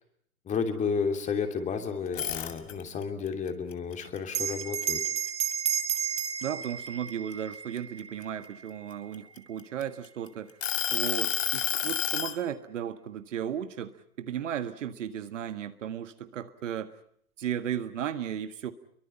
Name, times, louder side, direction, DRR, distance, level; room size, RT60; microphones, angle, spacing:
voice 1, 0.5-5.0, left 5 dB, 15° left, 6 dB, 2.9 m, -31 dB
sound 1, 2.1-3.0 3.5-5.3 5.7-6.0 6.4-8.2 8.9-10.1 10.6-12.4, left 10 dB, 60° left, 2.4 m, -30 dB
Bell, 4.3-9.2, right 8 dB, 15° right, 1.2 m, -33 dB
voice 2, 6.4-10.5 10.9-16.9 17.4-18.7, right 9 dB, 55° right, 10 dB, 1.7 m, -35 dB
29.5 x 23.5 x 5.7 m, 0.65 s
figure-of-eight pair, 120°, 44 cm